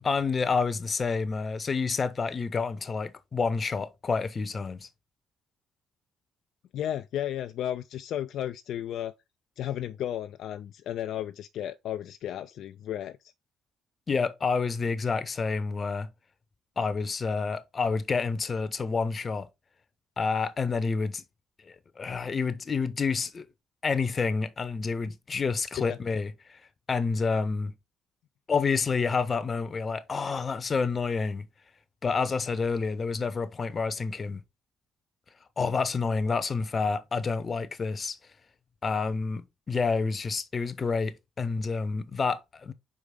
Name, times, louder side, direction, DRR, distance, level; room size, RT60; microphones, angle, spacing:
voice 1, 0.0-4.9 14.1-16.1 16.8-19.5 20.2-21.2 21.7-23.5 23.8-26.6 26.9-27.7 28.5-31.5 32.0-34.4 35.6-38.2 38.8-42.7, left 4 dB, 40° left, 0.8 m, -29 dB
voice 2, 6.7-9.1 9.6-13.3 25.8-26.0, left 11 dB, 65° left, 0.3 m, -34 dB
5.2 x 4.9 x 3.7 m
hypercardioid pair, 50°, 0 cm